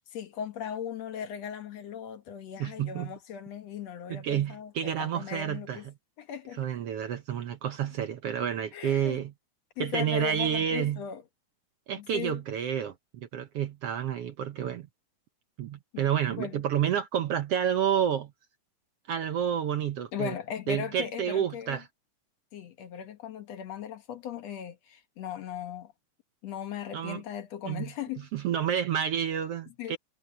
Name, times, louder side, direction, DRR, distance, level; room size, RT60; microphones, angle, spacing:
voice 1, 0.0-5.9 6.2-6.6 8.7-9.2 9.8-11.2 12.0-12.4 15.9-16.0 16.4-16.6 20.1-21.8 22.5-25.9 26.4-28.3 29.8-30.0, left 8 dB, 65° left, 2.4 m, -38 dB
voice 2, 2.6-3.1 4.1-5.8 6.6-9.3 9.8-11.0 11.9-14.9 15.6-18.3 19.1-20.3 20.7-21.9 26.9-27.2 27.6-27.9 28.3-30.0, right 9 dB, 65° right, 1.6 m, -29 dB
omnidirectional pair, 3.5 m